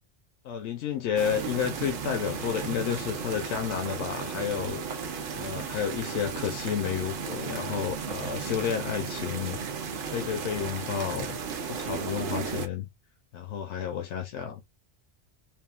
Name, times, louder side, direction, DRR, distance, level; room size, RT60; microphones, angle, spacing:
voice 1, 0.4-4.8 5.3-9.6 10.1-11.4 11.7-12.9 13.3-14.6, left 8 dB, 90° left, 0.9 m, -31 dB
sound 1, 1.2-12.7, right 6 dB, 60° right, 0.7 m, -35 dB
3.5 x 2.1 x 2.3 m
omnidirectional pair, 1.1 m